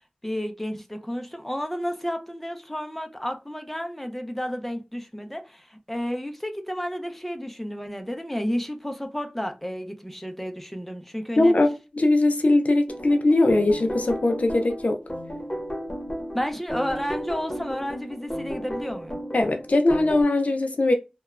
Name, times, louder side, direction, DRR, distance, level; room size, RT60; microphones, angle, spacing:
voice 1, 0.2-11.5 16.3-19.2, equal, 5° left, 0.5 m, -31 dB
voice 2, 11.4-11.7 12.0-15.0 19.3-20.9, left 2 dB, 65° left, 0.4 m, -20 dB
sound 1, 12.9-20.2, equal, 35° left, 0.9 m, -34 dB
2.8 x 2.2 x 2.3 m
wide cardioid pair, 50°, 3 cm